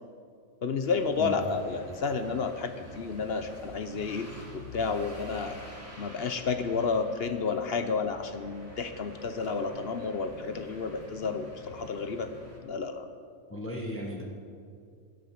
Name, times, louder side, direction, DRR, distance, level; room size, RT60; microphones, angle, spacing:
voice 1, 0.6-5.6 6.0-12.3 12.6-13.1, left 5 dB, 55° left, 8 dB, 0.9 m, -31 dB
sound 1, 0.8-12.6, left 2 dB, 10° right, 2.6 m, -48 dB
voice 2, 13.5-14.2, left 1 dB, 10° left, -1 dB, 1.2 m, -35 dB
13.5 x 11.0 x 5.9 m, 2.3 s
omnidirectional pair, 1.4 m